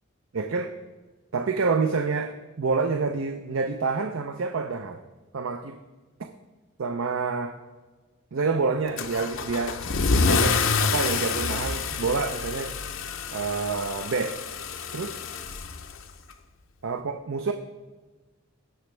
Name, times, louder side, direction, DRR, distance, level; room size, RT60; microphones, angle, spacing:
voice 1, 0.3-0.7 1.3-5.0 5.3-5.8 6.8-7.6 8.3-9.8 10.1-12.8 13.3-14.4 14.9-15.2 16.8-17.5, right 4 dB, 80° right, 6 dB, 0.6 m, -28 dB
Car / Engine starting / Accelerating revving vroom, 9.0-16.3, left 4 dB, 80° left, 0.7 m, -27 dB
17.0 x 6.1 x 3.3 m, 1.3 s
head